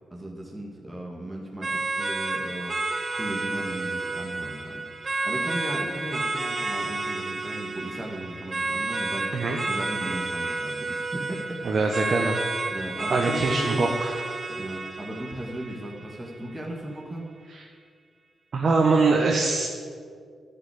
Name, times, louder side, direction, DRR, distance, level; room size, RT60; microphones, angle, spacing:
voice 1, 0.1-2.8 3.1-12.0 12.7-13.9 14.5-17.3, right 1 dB, 15° right, -2 dB, 2.1 m, -36 dB
sound 1, 1.6-16.6, right 3 dB, 40° right, 1.5 m, -31 dB
voice 2, 11.6-12.4 13.1-14.2 17.5-17.6 18.5-19.7, right 3 dB, 55° right, 0 dB, 1.3 m, -23 dB
11.5 x 5.7 x 8.6 m, 2.1 s
cardioid pair, 65°, 0 cm